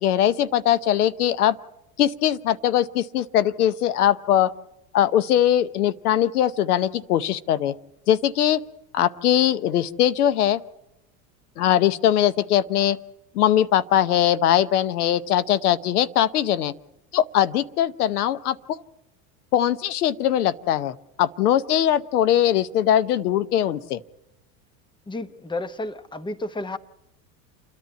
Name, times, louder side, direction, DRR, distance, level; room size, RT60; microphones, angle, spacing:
voice 1, 0.0-1.6 2.0-4.5 4.9-7.7 8.1-8.6 8.9-10.6 11.6-13.0 13.3-16.7 17.1-18.8 19.5-24.0, left 11 dB, 90° left, 15 dB, 0.9 m, -21 dB
voice 2, 25.1-26.8, left 2 dB, 10° left, 13 dB, 1.0 m, -31 dB
29.0 x 10.5 x 8.9 m, 0.91 s
hypercardioid pair, 95°, 44 cm